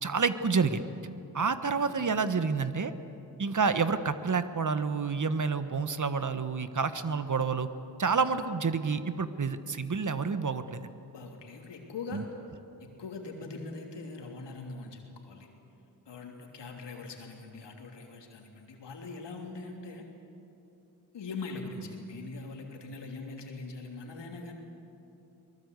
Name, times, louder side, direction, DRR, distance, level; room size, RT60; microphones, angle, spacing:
voice 1, 0.0-0.8 1.3-2.9 3.4-7.7 8.0-10.9 12.1-12.2, right 5 dB, 45° right, 11 dB, 1.4 m, -29 dB
voice 2, 1.7-2.1 11.1-12.3 12.8-15.5 16.0-20.1 21.1-24.5, left 3 dB, 85° left, 1 dB, 3.2 m, -42 dB
23.5 x 20.0 x 8.2 m, 2.9 s
cardioid pair, 50°, 41 cm